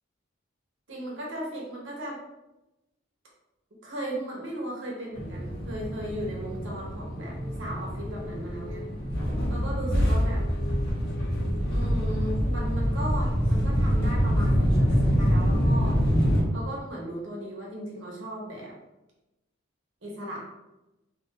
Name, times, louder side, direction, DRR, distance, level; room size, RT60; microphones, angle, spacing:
voice 1, 0.9-2.2 3.8-8.9 9.5-10.4 11.7-16.1 16.5-18.7 20.0-20.4, right 1 dB, 70° right, -3 dB, 1.1 m, -36 dB
sound 1, 5.1-16.4, equal, 55° left, 1.1 m, -25 dB
3.0 x 2.6 x 3.9 m, 0.98 s
head